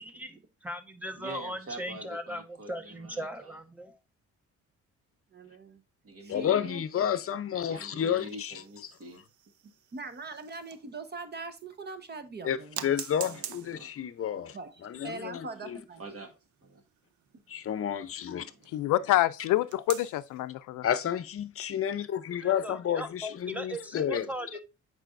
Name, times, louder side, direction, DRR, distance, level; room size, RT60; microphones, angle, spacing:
voice 1, 0.0-4.0 22.4-24.6, equal, 5° right, 1.2 m, -38 dB
voice 2, 1.1-3.6 6.0-6.8 7.6-9.2 13.3-13.9 16.0-16.3 16.6-16.8 18.4-18.6, right 2 dB, 50° right, 1.8 m, -45 dB
voice 3, 5.3-5.8 6.2-7.0 9.9-12.8 14.5-14.7 15.0-16.0, right 3 dB, 35° right, 1.1 m, -41 dB
voice 4, 6.3-8.5 12.4-15.8 17.5-18.5 20.8-24.3, left 9 dB, 50° left, 0.7 m, -31 dB
sound 1, 8.1-11.0 11.6-11.7 12.7-18.8 19.7-20.3, right 10 dB, 70° right, 0.7 m, -46 dB
voice 5, 18.7-20.9, left 15 dB, 80° left, 0.5 m, -27 dB
8.1 x 5.0 x 2.6 m
cardioid pair, 90°, 30 cm